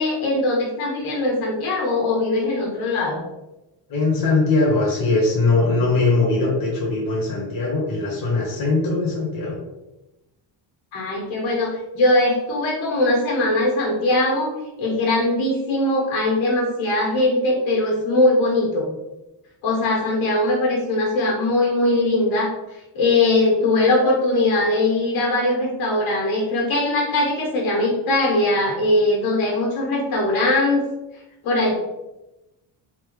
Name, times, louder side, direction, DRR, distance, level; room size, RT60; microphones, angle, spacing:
voice 1, 0.0-3.2 10.9-18.9 19.6-30.9 31.4-31.7, left 2 dB, 80° left, -3 dB, 1.5 m, -21 dB
voice 2, 3.9-9.6, left 3 dB, 45° left, -4 dB, 1.1 m, -20 dB
3.5 x 2.8 x 3.1 m, 0.98 s
cardioid pair, 170°, 47 cm